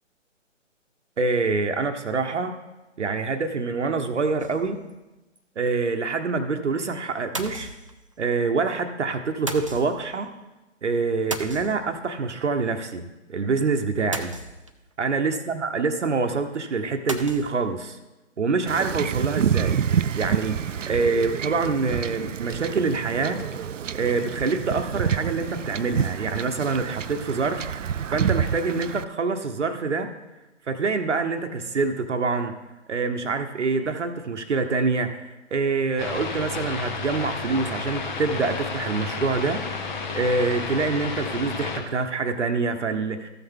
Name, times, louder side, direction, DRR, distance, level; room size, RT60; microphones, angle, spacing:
voice 1, 1.2-2.5 3.0-4.8 5.6-7.7 8.2-10.3 10.8-13.0 13.3-14.3 15.0-18.0 18.4-23.4 23.9-27.7 28.1-30.1 30.7-32.5 32.9-43.3, right 4 dB, 70° right, 6 dB, 1.0 m, -26 dB
sound 1, 4.4-4.9 5.4-5.5 5.7-5.8 7.3-8.2 9.5-10.1 11.3-12.2 14.1-14.9 17.1-17.6, right 2 dB, 30° right, 0.4 m, -35 dB
Wind / Ocean / Boat Water vehicle, 18.7-29.0, right 8 dB, 85° right, 0.5 m, -28 dB
sound 2, 36.0-41.8, left 4 dB, 40° left, 1.3 m, -31 dB
14.5 x 5.9 x 3.6 m, 1.1 s
figure-of-eight pair, 145°, 37 cm